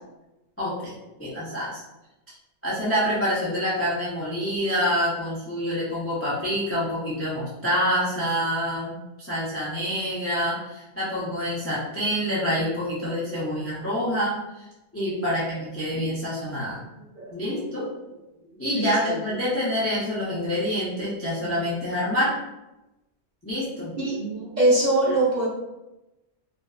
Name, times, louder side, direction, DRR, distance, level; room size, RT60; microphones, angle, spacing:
voice 1, 0.6-1.8 2.6-14.3 14.9-16.8 17.3-17.8 18.6-22.3 23.4-23.9, equal, 20° left, -8 dB, 0.4 m, -27 dB
voice 2, 13.0-13.6 15.1-15.2 15.5-15.6 15.9-16.1 17.1-18.1 18.7-19.2 24.0-25.5, right 2 dB, 45° right, -7 dB, 0.7 m, -25 dB
2.5 x 2.3 x 2.3 m, 0.97 s
omnidirectional pair, 1.2 m